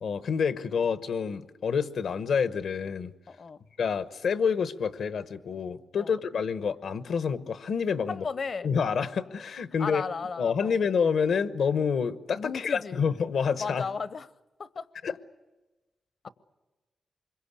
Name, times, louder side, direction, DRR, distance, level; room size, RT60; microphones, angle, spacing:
voice 1, 0.0-3.1 3.8-8.3 8.6-10.0 10.4-13.8 15.0-15.2, left 6 dB, 80° left, 1.0 m, -28 dB
voice 2, 3.3-3.6 6.0-6.1 8.1-8.7 9.8-10.8 12.3-13.0 13.6-14.3 14.6-14.9 16.2-16.3, left 5 dB, 60° left, 0.7 m, -35 dB
25.5 x 22.5 x 8.4 m
cardioid pair, 70°, 0 cm